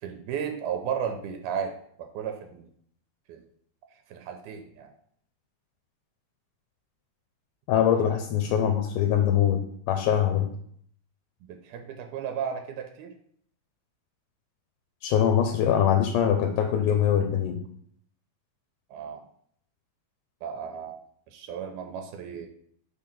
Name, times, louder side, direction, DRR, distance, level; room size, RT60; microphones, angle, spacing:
voice 1, 0.0-2.7 3.3-3.4 4.1-4.9 7.7-7.9 11.4-13.1 18.9-19.2 20.4-21.0 21.3-22.5, right 7 dB, 85° right, 5 dB, 2.1 m, -34 dB
voice 2, 7.7-9.6 9.9-10.5 15.0-17.6, left 9 dB, 90° left, 5 dB, 2.2 m, -23 dB
5.6 x 3.7 x 5.9 m, 0.64 s
omnidirectional pair, 3.6 m